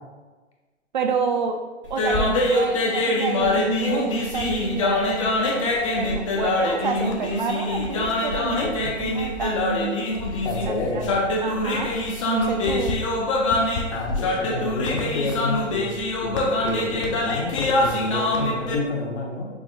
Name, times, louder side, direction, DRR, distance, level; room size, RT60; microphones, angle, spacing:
voice 1, 0.9-1.6 1.9-10.1 10.6-11.1 11.4-11.9 12.3-13.0, right 5 dB, 40° right, 4 dB, 0.4 m, -29 dB
sound 1, 1.9-18.8, left 2 dB, 25° left, 0.5 m, -24 dB
voice 2, 8.6-8.9 10.4-11.0 13.9-15.9 16.2-16.3 16.6-19.5, left 2 dB, 60° left, 0 dB, 1.2 m, -29 dB
5.8 x 2.2 x 3.9 m, 1.3 s
figure-of-eight pair, 135°, 37 cm